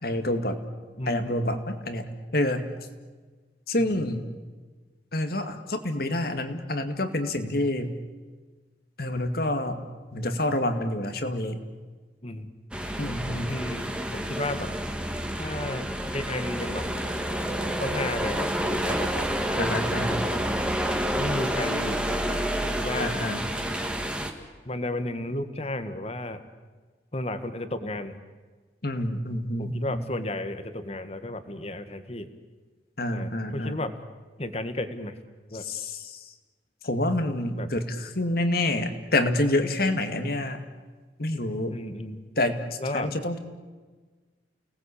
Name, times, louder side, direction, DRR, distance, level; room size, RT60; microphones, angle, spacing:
voice 1, 0.0-0.6 1.1-2.7 3.7-4.2 5.1-8.0 9.0-9.9 10.1-11.6 13.0-13.5 19.6-20.3 23.0-23.5 28.8-30.1 33.0-33.8 35.6-36.3 36.8-40.6 41.2-41.8 42.4-43.4, left 1 dB, 55° left, 7 dB, 2.3 m, -28 dB
voice 2, 1.0-1.6 3.8-4.1 12.2-12.5 13.5-14.7 15.4-16.9 17.8-19.8 21.1-23.1 24.7-26.4 27.1-28.2 29.6-32.3 33.1-33.9 34.4-35.2 35.5-35.6 37.5-37.7 41.7-42.2 42.8-43.1, left 1 dB, 35° left, 9 dB, 1.8 m, -33 dB
sound 1, 12.7-24.3, right 1 dB, 5° right, 2.0 m, -29 dB
29.5 x 19.5 x 8.6 m, 1.4 s
head